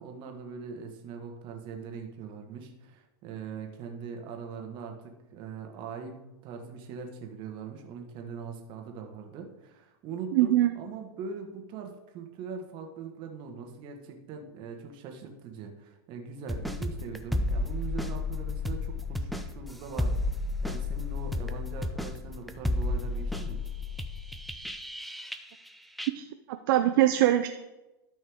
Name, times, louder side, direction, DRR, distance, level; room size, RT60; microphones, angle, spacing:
voice 1, 0.0-20.2 20.6-23.6, right 5 dB, 35° right, 3 dB, 1.5 m, -41 dB
voice 2, 10.3-10.8 26.1-27.5, right 13 dB, 55° right, 8 dB, 0.5 m, -23 dB
sound 1, 16.5-25.7 26.0-26.1, left 2 dB, ahead, 0.4 m, -32 dB
12.5 x 5.4 x 3.6 m, 1.0 s
hypercardioid pair, 135°, 13 cm